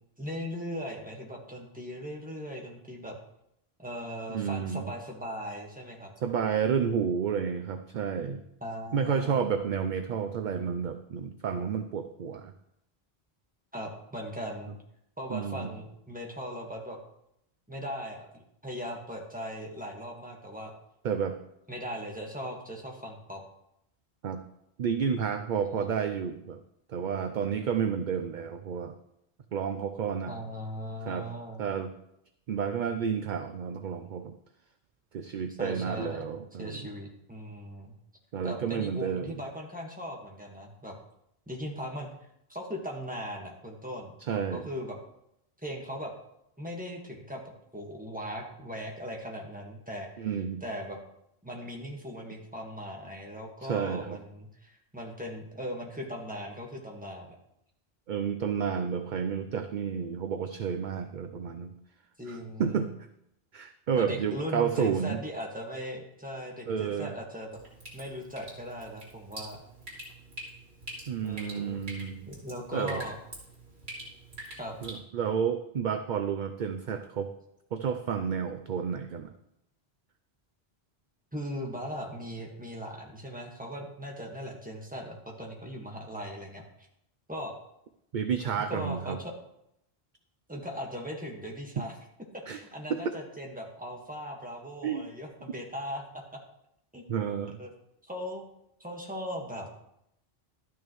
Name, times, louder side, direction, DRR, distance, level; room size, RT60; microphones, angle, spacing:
voice 1, 0.2-3.2 3.8-6.1 8.6-9.5 13.7-14.7 15.2-17.0 17.7-20.7 21.7-23.4 25.7-25.9 30.3-31.6 35.6-36.3 36.6-37.9 38.4-41.0 41.5-42.1 42.5-45.0 45.6-46.1 46.6-47.4 47.7-50.3 50.6-51.0 51.4-57.3 62.2-62.8 64.0-67.6 67.9-69.6 71.2-71.8 72.3-73.1 74.5-74.7 81.3-86.6 87.3-87.6 88.7-89.3 90.5-91.9 92.3-96.4 96.9-97.2 97.6-97.7 98.0-98.4 98.8-99.7, equal, 10° right, 0 dB, 1.6 m, -39 dB
voice 2, 4.3-4.9 6.2-8.4 8.9-12.5 15.3-15.7 21.0-21.4 24.2-24.4 24.8-26.6 26.9-28.9 29.5-30.3 31.0-31.3 31.6-31.9 32.5-34.3 35.1-36.9 38.3-39.4 44.3-44.7 50.2-50.6 53.6-54.2 58.1-61.7 62.3-62.9 63.5-65.2 66.7-67.1 71.1-72.3 72.7-73.0 74.8-77.3 77.7-79.3 88.1-89.2 91.8-91.9 92.5-92.6 92.9-93.1 94.8-95.1 97.1-97.6, right 7 dB, 55° right, 8 dB, 0.6 m, -31 dB
Drip, 67.5-75.0, right 1 dB, 90° right, 3.1 m, -45 dB
12.5 x 9.3 x 3.1 m, 0.79 s
omnidirectional pair, 1.1 m